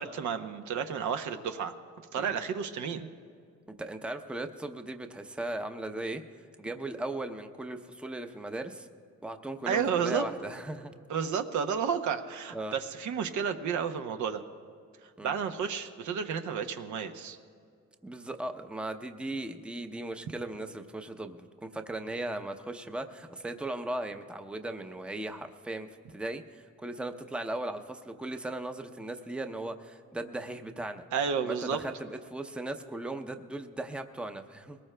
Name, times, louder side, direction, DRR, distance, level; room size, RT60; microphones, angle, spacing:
voice 1, 0.0-1.7 2.1-3.1 9.7-10.2 11.1-14.4 15.0-17.4 31.1-31.8, right 7 dB, 75° right, 7 dB, 0.8 m, -31 dB
voice 2, 3.7-6.2 6.6-8.9 9.2-10.9 12.5-12.8 15.2-15.3 18.0-31.0 31.4-34.8, right 2 dB, 5° right, 7 dB, 0.6 m, -37 dB
21.5 x 19.0 x 2.2 m, 2.3 s
cardioid pair, 90°, 30 cm